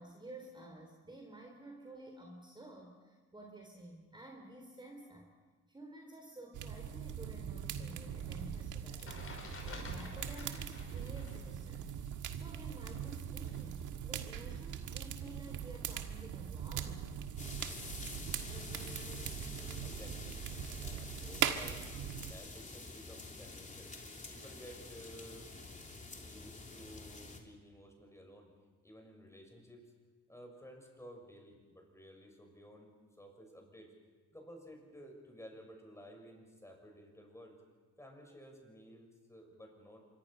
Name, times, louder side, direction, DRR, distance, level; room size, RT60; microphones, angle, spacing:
voice 1, 0.0-5.3 5.7-11.9 12.3-17.1, right 1 dB, 15° right, 1 dB, 3.7 m, -52 dB
sound 1, 6.5-22.3, right 9 dB, 80° right, 1.7 m, -41 dB
sound 2, 8.6-11.5 11.7-13.6, left 3 dB, 45° left, 5.7 m, -50 dB
sound 3, 17.4-27.4, left 3 dB, 25° left, 3.2 m, -48 dB
voice 2, 19.8-20.3 20.8-21.9 22.2-23.9 24.3-25.5 26.2-28.5 28.8-29.9 30.3-33.9 34.3-37.6 38.0-40.0, equal, 10° left, 2 dB, 6.5 m, -54 dB
26.0 x 23.5 x 5.8 m, 1.3 s
cardioid pair, 90°, 30 cm